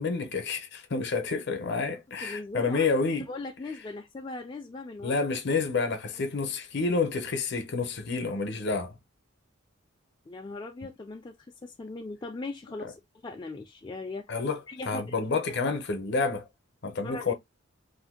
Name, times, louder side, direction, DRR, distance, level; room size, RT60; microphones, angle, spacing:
voice 1, 0.0-3.3 5.0-8.9 14.3-14.6 14.9-16.4 16.8-17.3, left 4 dB, 55° left, 0.6 m, -29 dB
voice 2, 2.2-2.9 3.3-5.2 5.5-5.6 10.3-14.3 14.7-15.1 17.0-17.3, left 3 dB, 20° left, 0.3 m, -39 dB
2.5 x 2.2 x 3.5 m
head